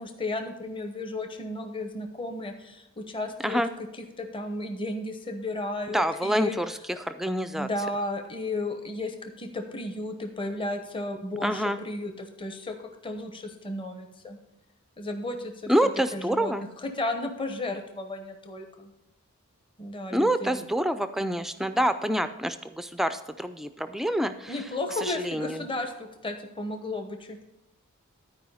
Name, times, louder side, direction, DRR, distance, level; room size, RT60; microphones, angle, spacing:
voice 1, 0.0-3.9 4.2-6.6 7.5-12.8 13.0-14.4 15.0-18.9 19.8-20.6 24.5-27.4, left 2 dB, 25° left, 5 dB, 0.9 m, -34 dB
voice 2, 5.9-7.7 11.4-11.8 15.7-16.6 20.1-24.6 25.0-25.7, equal, ahead, 10 dB, 0.4 m, -27 dB
12.0 x 4.8 x 5.6 m, 0.96 s
head